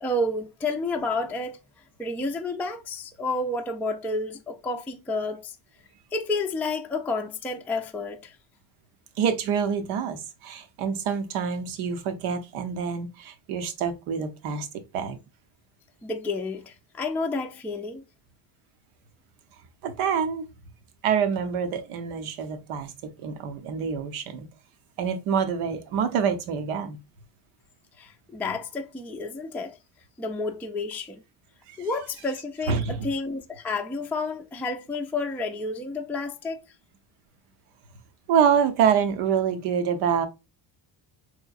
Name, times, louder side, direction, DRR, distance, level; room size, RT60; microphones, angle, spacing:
voice 1, 0.0-1.6 2.0-5.6 6.1-8.4 16.0-18.0 28.0-29.8 30.2-31.2 31.8-36.6, left 2 dB, 5° left, 0.3 m, -30 dB
voice 2, 9.2-14.7 14.9-15.2 19.8-20.4 21.0-24.5 25.0-27.0 31.7-31.9 32.7-33.1 38.3-40.3, right 7 dB, 85° right, 0.9 m, -26 dB
3.7 x 3.1 x 2.4 m
supercardioid pair, 75°, 49 cm